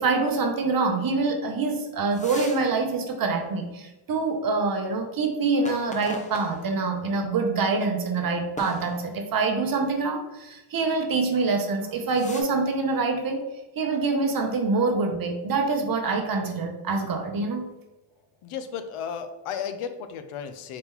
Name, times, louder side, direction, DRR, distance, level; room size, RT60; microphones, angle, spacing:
voice 1, 0.0-13.4 13.8-17.7, right 3 dB, 45° right, 4 dB, 0.7 m, -25 dB
sound 1, 2.1-2.7 3.1-3.2 5.5-6.9 7.6-7.7 8.6-9.4 11.2-11.5 11.8-12.4, left 2 dB, 15° left, 0.4 m, -40 dB
voice 2, 18.4-20.8, left 7 dB, 80° left, 9 dB, 0.6 m, -34 dB
4.2 x 2.9 x 3.7 m, 0.99 s
wide cardioid pair, 145°, 50 cm